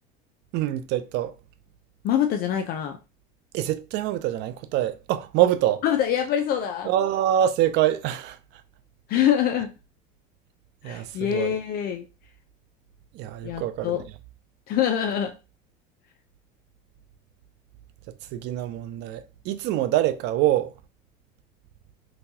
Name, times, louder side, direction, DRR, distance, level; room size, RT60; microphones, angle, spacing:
voice 1, 0.5-1.3 3.5-5.8 6.8-8.4 10.8-11.6 13.1-14.0 18.3-20.7, right 12 dB, 55° right, 0.4 m, -25 dB
voice 2, 2.0-3.0 5.8-6.9 9.1-9.7 10.8-12.1 13.4-14.0 14.7-15.3, left 10 dB, 45° left, 0.4 m, -24 dB
4.0 x 2.3 x 2.7 m
cardioid pair, 135°, 21 cm